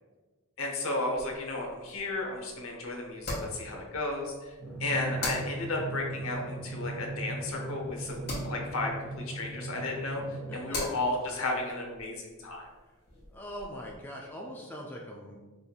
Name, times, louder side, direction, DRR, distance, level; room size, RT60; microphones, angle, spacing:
voice 1, 0.6-4.5 4.8-10.2 10.5-12.7, left 2 dB, 60° left, 1 dB, 0.8 m, -33 dB
sound 1, 1.1-14.0, left 2 dB, 45° left, 1.5 m, -43 dB
Drum, 4.6-10.6, right 2 dB, 80° right, 1.0 m, -38 dB
voice 2, 13.3-15.4, equal, 10° left, -2 dB, 0.3 m, -42 dB
5.3 x 3.2 x 2.3 m, 1.3 s
head